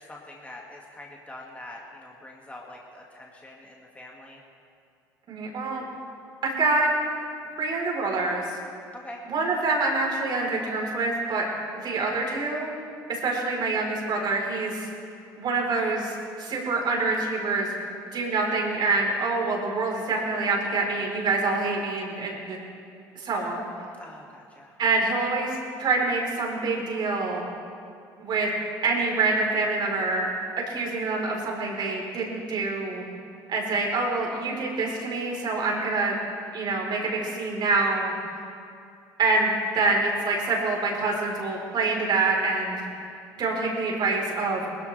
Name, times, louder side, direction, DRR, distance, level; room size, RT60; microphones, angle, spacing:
voice 1, 0.0-4.4 8.9-9.2 24.0-24.8, left 1 dB, 15° left, -2 dB, 2.1 m, -44 dB
voice 2, 5.3-5.9 6.4-6.9 7.6-8.5 9.3-11.4 11.8-12.7 13.1-14.9 15.3-17.7 18.1-22.6 23.2-23.7 24.8-27.4 28.2-28.5 28.8-30.3 30.7-33.0 33.5-36.1 36.5-38.1 39.2-42.8 43.4-44.7, right 3 dB, 50° right, -1 dB, 4.1 m, -26 dB
21.5 x 13.5 x 3.4 m, 2.4 s
hypercardioid pair, 70°, 10 cm